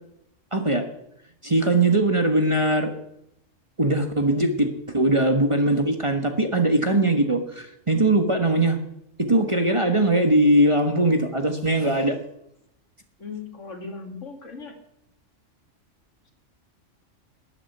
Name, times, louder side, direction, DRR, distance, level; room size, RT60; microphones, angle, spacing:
voice 1, 0.5-0.8 1.4-2.9 3.8-8.8 9.2-12.2, right 1 dB, 25° right, 5 dB, 1.3 m, -21 dB
voice 2, 13.2-14.7, left 4 dB, 70° left, 3 dB, 2.8 m, -37 dB
12.5 x 8.8 x 9.2 m, 0.79 s
omnidirectional pair, 1.3 m